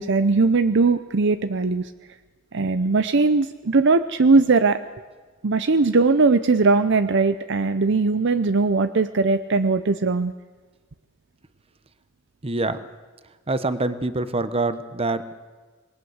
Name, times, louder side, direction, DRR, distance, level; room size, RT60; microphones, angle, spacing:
voice 1, 0.0-1.9 2.5-4.8 5.4-10.3, right 3 dB, 60° right, 12 dB, 0.7 m, -19 dB
voice 2, 12.4-12.8 13.5-15.3, right 2 dB, 30° right, 12 dB, 1.0 m, -25 dB
27.0 x 20.0 x 8.0 m, 1.4 s
head